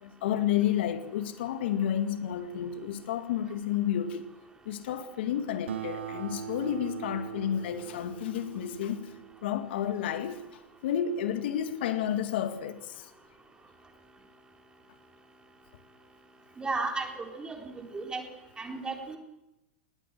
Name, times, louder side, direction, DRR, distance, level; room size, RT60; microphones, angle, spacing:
voice 1, 0.0-4.3 4.7-9.1 9.4-13.1, left 10 dB, 70° left, 2.1 m, -31 dB
Acoustic guitar, 5.7-10.5, right 11 dB, 85° right, 0.9 m, -41 dB
voice 2, 16.6-18.2 18.6-19.2, right 3 dB, 15° right, 4.0 m, -34 dB
19.5 x 17.5 x 7.7 m
hypercardioid pair, 115°, 6 cm